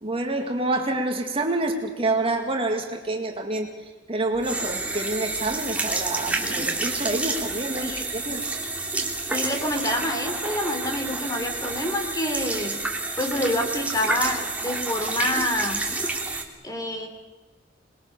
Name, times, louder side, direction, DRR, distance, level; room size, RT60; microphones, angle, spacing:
voice 1, 0.0-3.7 4.1-8.5, right 2 dB, 30° right, 3 dB, 2.2 m, -27 dB
sound 1, 4.3-16.4, right 3 dB, 10° right, 2.8 m, -29 dB
voice 2, 9.3-12.8 13.2-15.9 16.6-17.1, left 1 dB, 20° left, 4 dB, 3.5 m, -27 dB
27.0 x 21.0 x 6.9 m, 1.2 s
head